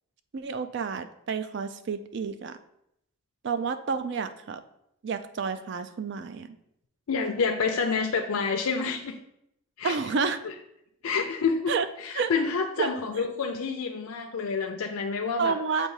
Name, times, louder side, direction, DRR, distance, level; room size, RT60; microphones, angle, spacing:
voice 1, 0.3-2.6 3.4-4.6 5.0-6.6 9.8-10.4 11.7-11.9 12.2-12.3 12.8-13.2 15.4-15.9, right 5 dB, 55° right, 10 dB, 0.4 m, -30 dB
voice 2, 7.1-9.2 9.8-10.5 11.0-15.6, left 5 dB, 85° left, 3 dB, 0.5 m, -28 dB
7.5 x 2.7 x 4.7 m, 0.77 s
head